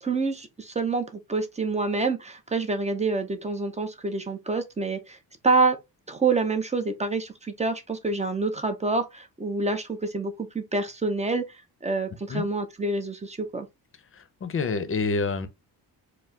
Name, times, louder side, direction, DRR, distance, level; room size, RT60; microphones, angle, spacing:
voice 1, 0.0-5.2 5.4-5.8 6.1-11.5 11.8-13.7, right 3 dB, 15° right, 0.5 m, -27 dB
voice 2, 14.1-15.5, left 4 dB, 30° left, 0.6 m, -28 dB
4.5 x 2.0 x 3.7 m
cardioid pair, 135°, 41 cm